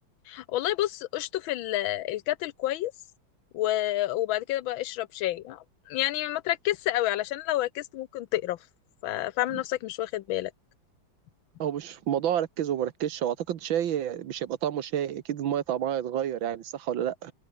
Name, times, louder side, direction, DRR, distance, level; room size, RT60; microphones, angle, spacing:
voice 1, 0.3-2.9 3.5-8.6 9.0-10.5, left 15 dB, 90° left, 1.5 m, -29 dB
voice 2, 11.6-17.3, right 10 dB, 75° right, 1.9 m, -29 dB
omnidirectional pair, 2.1 m